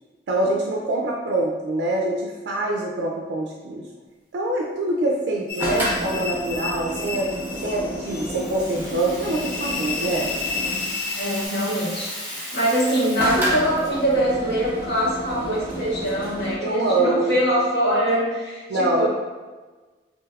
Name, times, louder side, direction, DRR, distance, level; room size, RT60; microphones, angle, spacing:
voice 1, 0.3-3.9 4.3-7.3 7.6-10.3 16.6-17.4 18.7-19.1, right 2 dB, 85° right, -2 dB, 0.3 m, -24 dB
sound 1, 5.5-11.5, left 5 dB, 50° left, 0.4 m, -32 dB
sound 2, 5.6-11.0 13.2-16.5, right 1 dB, 10° right, 0.5 m, -31 dB
Rattle (instrument), 8.2-14.2, left 1 dB, 25° left, 0.9 m, -36 dB
voice 2, 11.1-19.1, equal, 75° left, -7 dB, 1.0 m, -23 dB
3.2 x 2.6 x 2.3 m, 1.3 s
head